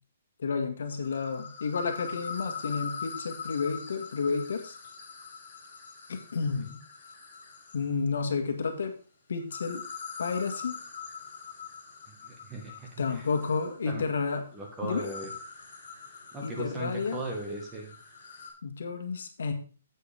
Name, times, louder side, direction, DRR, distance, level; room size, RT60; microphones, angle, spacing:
voice 1, 0.4-4.8 6.1-6.7 7.7-8.9 9.3-9.8 10.2-10.7 13.0-14.4 14.8-15.1 16.4-17.2 18.6-19.5, left 5 dB, 70° left, 6 dB, 1.6 m, -31 dB
sound 1, 0.9-8.0 9.4-18.5, left 6 dB, 40° left, 4.5 m, -43 dB
voice 2, 12.1-13.3 13.9-14.0 14.5-15.3 16.3-18.0, right 2 dB, 10° right, -1 dB, 1.4 m, -38 dB
9.4 x 8.1 x 3.4 m, 0.38 s
hypercardioid pair, 175°, 0 cm